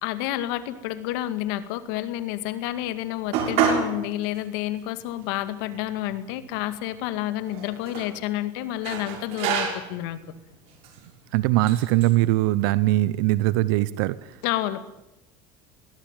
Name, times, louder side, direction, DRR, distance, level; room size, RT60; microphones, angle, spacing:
voice 1, 0.0-10.2 14.4-15.0, left 14 dB, 75° left, 11 dB, 2.1 m, -29 dB
sound 1, 3.3-3.9 4.3-4.4 5.2-5.3 5.6-6.6 7.5-8.1 8.8-10.0 10.7-11.0 11.7-12.1, right 7 dB, 65° right, 6.3 m, -28 dB
voice 2, 11.3-14.2, right 16 dB, 80° right, 17 dB, 0.8 m, -21 dB
21.5 x 18.0 x 9.1 m, 0.93 s
supercardioid pair, 120°, 11 cm